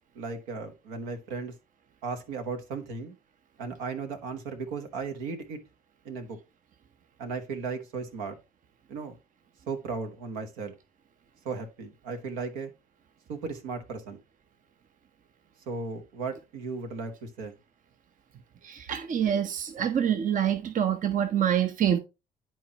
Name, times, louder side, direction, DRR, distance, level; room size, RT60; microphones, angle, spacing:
voice 1, 0.1-1.5 2.0-3.1 3.6-5.6 6.0-6.4 7.2-8.4 8.9-9.2 9.7-10.8 11.4-12.7 13.3-14.2 15.7-17.5, right 4 dB, 70° right, 1.2 m, -36 dB
voice 2, 18.6-22.0, right 9 dB, 45° right, 0.8 m, -26 dB
10.5 x 4.4 x 2.9 m
figure-of-eight pair, 50°, 19 cm